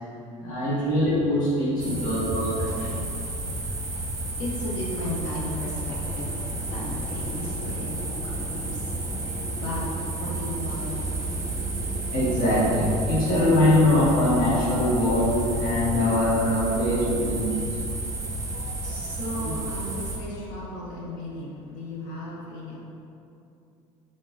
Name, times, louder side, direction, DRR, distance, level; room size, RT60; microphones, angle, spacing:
voice 1, 0.4-3.0 11.8-17.6 18.5-18.7 19.4-19.5, left 1 dB, 55° left, -8 dB, 1.3 m, -23 dB
sound 1, 1.8-20.2, right 2 dB, 20° right, 0.7 m, -32 dB
sound 2, 3.8-14.9, equal, 10° left, 1.0 m, -41 dB
voice 2, 4.4-9.8 10.2-11.3 18.8-22.8, left 1 dB, 75° left, -4 dB, 0.9 m, -35 dB
sound 3, 10.3-17.4, right 4 dB, 50° right, 0.4 m, -37 dB
3.8 x 3.7 x 2.5 m, 2.7 s
hypercardioid pair, 70°, 17 cm